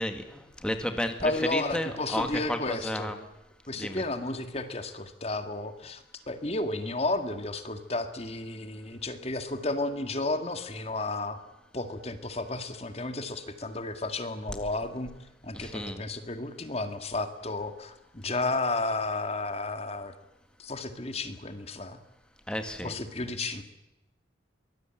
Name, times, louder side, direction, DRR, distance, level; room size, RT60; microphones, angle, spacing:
voice 1, 0.0-3.2 3.8-4.0 15.5-16.0 22.5-22.9, equal, 5° left, 6 dB, 1.9 m, -32 dB
voice 2, 1.2-3.1 3.7-11.4 11.7-15.1 15.4-20.1 20.6-22.0 22.8-23.6, left 2 dB, 30° left, 8 dB, 2.0 m, -32 dB
23.5 x 19.5 x 9.1 m, 0.94 s
head